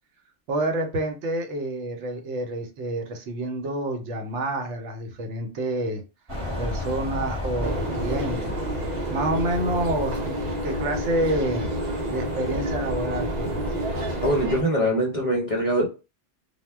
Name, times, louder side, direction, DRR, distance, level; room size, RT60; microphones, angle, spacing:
voice 1, 0.5-6.0 6.6-8.6 9.1-10.4 10.6-11.7 12.1-13.6, right 1 dB, 75° right, 4 dB, 0.9 m, -28 dB
sound 1, 6.3-14.4, left 1 dB, 25° right, 0.9 m, -34 dB
sound 2, 7.6-14.6, right 1 dB, 50° right, 0.6 m, -29 dB
voice 2, 14.2-15.9, equal, 40° left, -2 dB, 0.5 m, -23 dB
2.1 x 2.1 x 3.3 m, 0.29 s
omnidirectional pair, 1.3 m